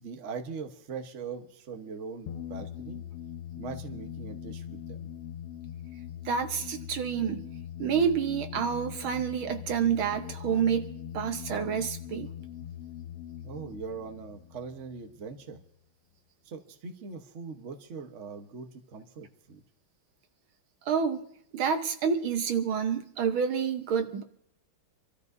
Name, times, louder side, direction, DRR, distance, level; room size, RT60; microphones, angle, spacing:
voice 1, 0.0-3.0 3.5-5.1 13.4-15.6 16.4-19.6, right 5 dB, 40° right, 5 dB, 1.2 m, -41 dB
sound 1, 2.3-15.5, left 10 dB, 80° left, 1.7 m, -41 dB
voice 2, 6.2-7.4 7.8-10.9 11.1-12.3 20.9-21.2 21.5-24.2, right 7 dB, 70° right, 7 dB, 1.6 m, -28 dB
27.0 x 13.5 x 2.7 m, 0.70 s
omnidirectional pair, 2.4 m